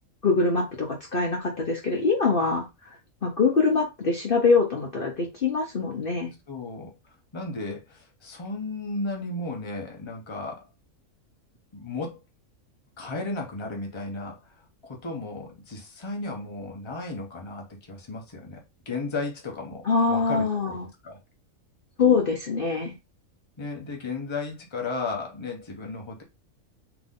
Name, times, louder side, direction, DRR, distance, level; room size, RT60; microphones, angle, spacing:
voice 1, 0.2-2.6 3.2-6.3 19.8-20.9 22.0-22.9, left 4 dB, 45° left, 0.9 m, -23 dB
voice 2, 6.5-10.7 11.7-12.2 13.0-20.8 21.0-21.2 23.6-26.2, left 3 dB, 25° left, 1.0 m, -34 dB
4.0 x 3.0 x 3.7 m
omnidirectional pair, 1.4 m